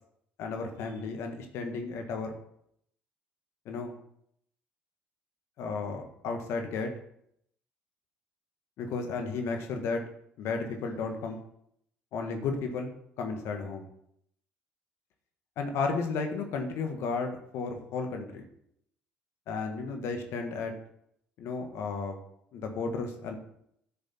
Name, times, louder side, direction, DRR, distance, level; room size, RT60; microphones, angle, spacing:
voice 1, 0.4-2.4 3.6-3.9 5.6-6.9 8.8-10.0 10.4-11.4 12.1-12.9 13.2-13.9 15.6-18.5 19.5-20.7 21.4-22.2 22.5-23.3, left 4 dB, 70° left, 4 dB, 1.6 m, -33 dB
9.7 x 6.3 x 4.4 m, 0.72 s
supercardioid pair, 75°, 5 cm